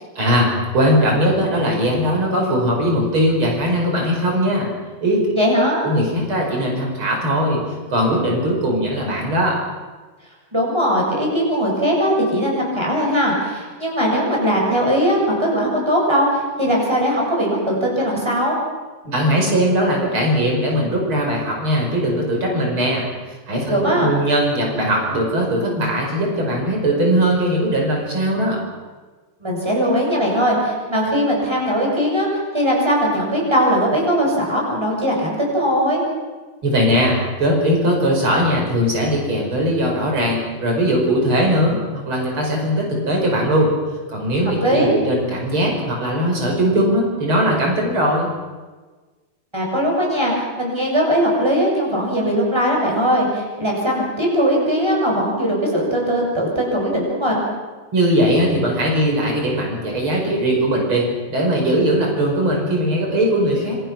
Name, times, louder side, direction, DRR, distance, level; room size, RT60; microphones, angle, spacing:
voice 1, 0.2-4.7 5.0-5.2 5.8-7.6 7.9-9.6 19.0-23.0 23.5-28.6 36.6-43.7 44.1-48.3 57.9-63.8, equal, 80° right, 0 dB, 6.3 m, -19 dB
voice 2, 5.3-5.8 10.5-18.5 23.7-24.1 29.4-32.3 32.5-36.0 44.6-44.9 49.5-57.5, equal, 10° right, -2 dB, 7.2 m, -19 dB
26.5 x 24.5 x 6.1 m, 1.3 s
omnidirectional pair, 2.3 m